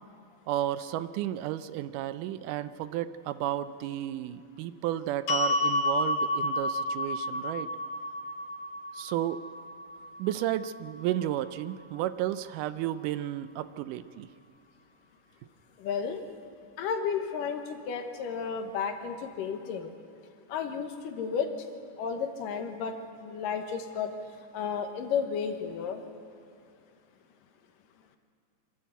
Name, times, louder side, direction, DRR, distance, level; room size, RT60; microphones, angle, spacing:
voice 1, 0.5-7.7 8.9-9.4 10.2-14.3, right 12 dB, 80° right, 13 dB, 2.1 m, -32 dB
sound 1, 5.3-11.5, left 1 dB, 65° left, 3.7 m, -31 dB
voice 2, 15.8-16.2 16.8-19.9 20.5-21.5 22.0-22.9 23.2-24.1 24.5-26.0, left 6 dB, 85° left, 6 dB, 2.8 m, -32 dB
26.5 x 12.0 x 8.1 m, 2.6 s
omnidirectional pair, 3.8 m